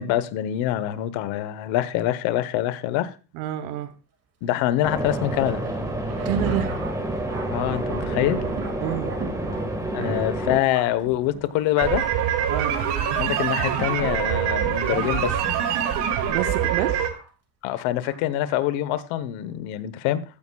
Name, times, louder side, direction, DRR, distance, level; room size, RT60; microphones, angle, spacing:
voice 1, 0.0-3.1 4.4-5.6 7.5-8.4 9.9-12.1 13.1-15.4 17.6-20.2, left 13 dB, 65° left, 1.1 m, -25 dB
voice 2, 3.3-3.9 6.2-6.7 8.8-9.3 10.0-10.6 12.5-12.8 16.3-17.1, right 11 dB, 80° right, 1.1 m, -29 dB
sound 1, 4.8-10.6, right 1 dB, 5° right, 1.6 m, -29 dB
Thunder, 5.3-15.2 16.0-16.1 17.1-17.3 18.0-18.2, right 4 dB, 30° right, 2.1 m, -36 dB
sound 2, 11.8-17.1, right 9 dB, 55° right, 2.2 m, -24 dB
14.5 x 9.5 x 2.3 m
cardioid pair, 140°, 50 cm